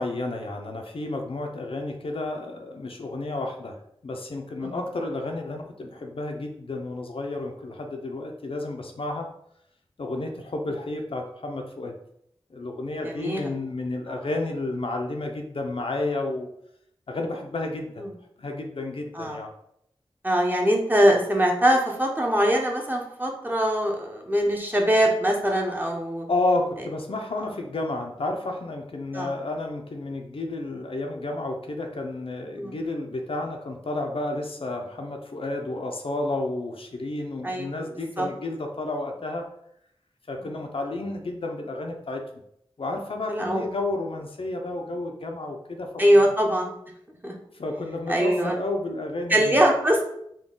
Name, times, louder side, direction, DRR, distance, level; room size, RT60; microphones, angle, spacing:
voice 1, 0.0-9.3 10.0-11.9 12.5-16.5 17.1-18.1 18.4-19.5 26.3-39.5 40.3-42.4 42.8-46.3 47.5-49.6, left 2 dB, 65° left, 3 dB, 0.5 m, -31 dB
voice 2, 13.0-13.5 18.0-18.1 19.1-19.4 20.2-26.3 29.1-29.3 32.5-32.8 37.4-37.7 38.2-38.3 40.4-40.6 43.3-43.6 46.0-46.7 47.2-47.3 48.1-48.5 49.3-50.0, equal, 20° right, 0 dB, 0.7 m, -22 dB
3.7 x 2.2 x 3.7 m, 0.73 s
wide cardioid pair, 65°, 10 cm